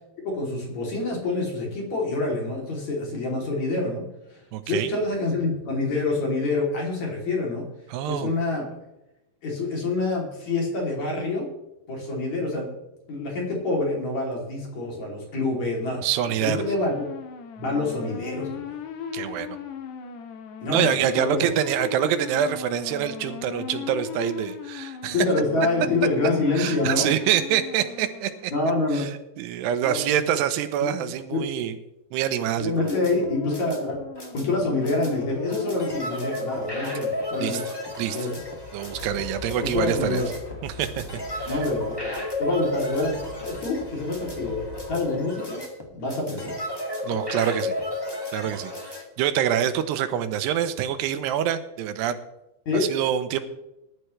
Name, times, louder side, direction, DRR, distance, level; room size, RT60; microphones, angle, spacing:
voice 1, 0.2-4.4 4.7-7.7 8.0-8.7 9.4-11.5 11.9-12.7 13.1-17.0 17.6-18.6 20.6-21.5 25.1-27.1 28.5-29.1 29.8-30.2 30.8-31.5 32.6-34.0 34.3-37.6 37.9-38.3 39.6-40.3 41.5-42.1 42.4-45.6 45.9-46.6 52.7-52.9, left 2 dB, 45° left, -1 dB, 4.1 m, -27 dB
voice 2, 4.5-4.9 7.9-8.3 16.0-16.6 19.1-19.6 20.7-25.2 26.6-28.5 28.9-29.1 29.4-31.8 32.1-32.9 37.4-37.6 38.0-38.2 38.7-40.2 40.6-41.0 41.3-41.6 47.0-47.7 48.3-52.2 52.7-53.4, right 10 dB, 90° right, 10 dB, 3.0 m, -26 dB
sound 1, 16.4-28.8 32.9-36.2, left 7 dB, 90° left, 3.4 m, -37 dB
sound 2, 32.6-49.0, left 2 dB, 10° left, 1.1 m, -33 dB
sound 3, 38.4-45.1, left 3 dB, 65° left, 5.2 m, -42 dB
19.5 x 11.5 x 3.3 m, 0.91 s
omnidirectional pair, 4.7 m